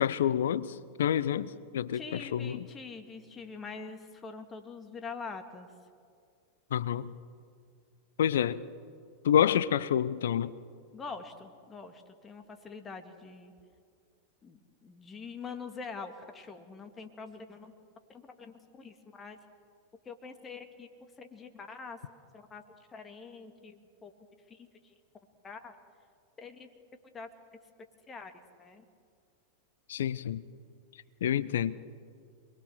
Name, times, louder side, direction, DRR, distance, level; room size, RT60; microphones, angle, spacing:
voice 1, 0.0-2.7 6.7-7.1 8.2-8.6 9.2-10.5 29.9-30.4 31.2-31.8, left 9 dB, 60° left, 0.8 m, -28 dB
voice 2, 1.9-5.7 10.9-13.5 14.4-17.7 18.1-19.4 20.0-20.9 21.2-22.0 22.3-22.6 22.9-24.1 24.5-24.9 25.4-25.7 26.4-26.7 27.1-27.3 28.1-28.3 28.6-28.8, left 4 dB, 20° left, 2.2 m, -44 dB
27.5 x 21.5 x 6.5 m
figure-of-eight pair, 90°, 0 cm